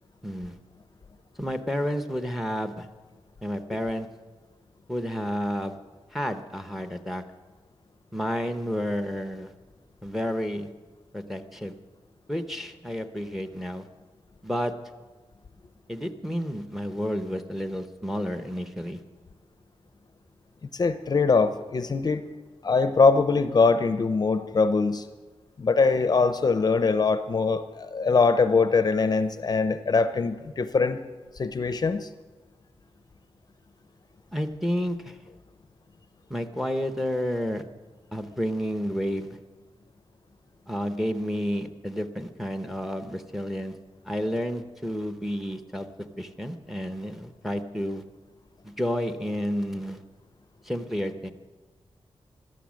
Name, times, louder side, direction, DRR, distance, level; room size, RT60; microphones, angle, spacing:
voice 1, 0.2-0.5 1.4-2.9 3.4-4.1 4.9-5.8 6.1-7.2 8.1-9.5 10.0-10.7 11.1-11.7 12.3-13.9 14.4-14.7 15.9-19.0 34.3-35.2 36.3-37.6 38.1-39.4 40.7-43.8 44.1-45.9 46.2-48.0 48.6-50.0 50.7-51.3, equal, ahead, 8 dB, 0.8 m, -30 dB
voice 2, 20.7-22.2 22.6-25.0 25.6-31.0 31.4-32.1, left 4 dB, 40° left, 10 dB, 0.6 m, -22 dB
17.5 x 12.5 x 6.3 m, 1.3 s
wide cardioid pair, 170°, 10 cm